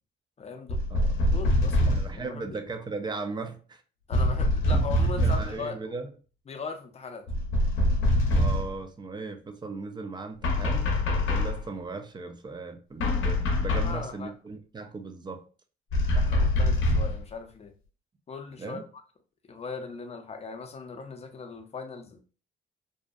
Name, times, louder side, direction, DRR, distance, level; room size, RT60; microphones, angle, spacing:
voice 1, 0.4-0.8 1.3-2.7 4.1-5.9 6.5-7.3 13.7-14.3 16.1-17.7 18.3-19.0 19.5-22.2, left 4 dB, 30° left, 0.5 m, -39 dB
sound 1, 0.7-2.2 4.1-5.6 7.3-8.8 10.4-11.7 13.0-14.0 15.9-17.2, left 1 dB, 80° left, 0.6 m, -24 dB
voice 2, 1.9-3.8 4.7-4.8 5.2-6.1 8.3-10.9 11.3-15.5 18.6-18.8, right 3 dB, 20° right, 0.4 m, -37 dB
2.6 x 2.1 x 2.4 m
cardioid pair, 90°, 20 cm